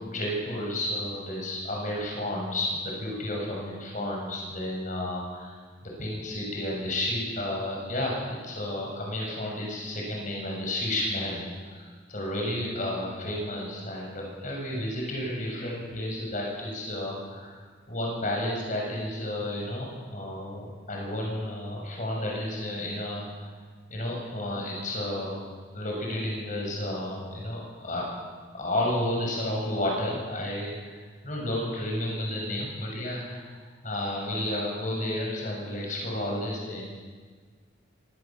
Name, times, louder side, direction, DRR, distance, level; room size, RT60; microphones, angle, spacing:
voice 1, 0.0-5.6 5.8-17.6 17.9-23.5 23.9-25.4 25.7-28.1 28.5-36.8, left 1 dB, 40° left, -1 dB, 6.7 m, -32 dB
24.0 x 18.0 x 7.3 m, 1.5 s
head